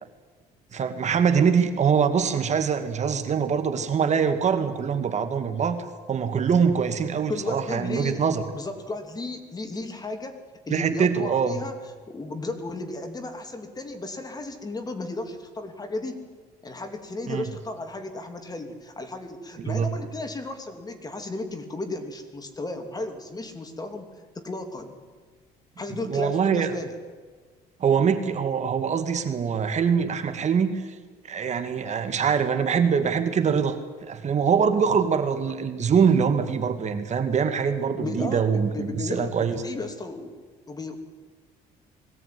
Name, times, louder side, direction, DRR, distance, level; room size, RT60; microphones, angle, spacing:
voice 1, 0.7-8.4 10.7-11.6 17.3-17.4 19.7-19.9 26.0-26.7 27.8-30.8 31.3-39.6, right 6 dB, 45° right, 7 dB, 2.1 m, -23 dB
voice 2, 7.3-10.4 10.7-11.8 12.1-16.3 16.6-24.1 24.3-25.0 25.8-27.0 37.9-40.3 40.7-41.0, left 2 dB, 20° left, 6 dB, 2.9 m, -34 dB
21.5 x 17.0 x 9.6 m, 1.5 s
cardioid pair, 110°, 17 cm